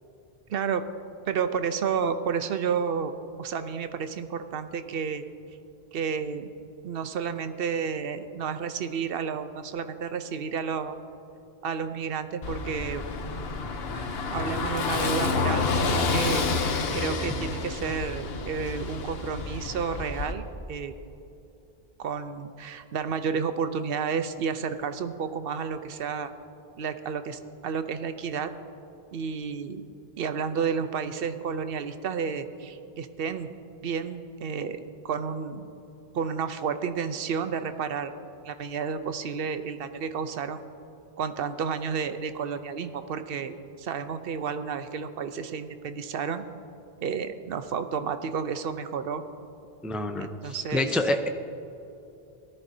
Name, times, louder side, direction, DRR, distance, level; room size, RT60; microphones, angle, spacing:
voice 1, 0.5-0.8 1.3-3.1 3.4-5.2 5.9-6.5 6.8-11.0 11.6-13.0 13.9-20.9 22.0-26.3 26.8-28.5 29.1-29.8 30.2-33.5 33.8-35.7 36.1-38.1 38.4-40.6 41.2-46.4 47.0-49.2 50.2-51.0, right 6 dB, 65° right, 10 dB, 0.9 m, -31 dB
Car passing by / Engine, 12.4-20.3, left 4 dB, 70° left, 1.1 m, -29 dB
voice 2, 49.8-51.3, left 1 dB, ahead, 6 dB, 0.4 m, -27 dB
18.5 x 13.5 x 2.7 m, 2.8 s
omnidirectional pair, 1.0 m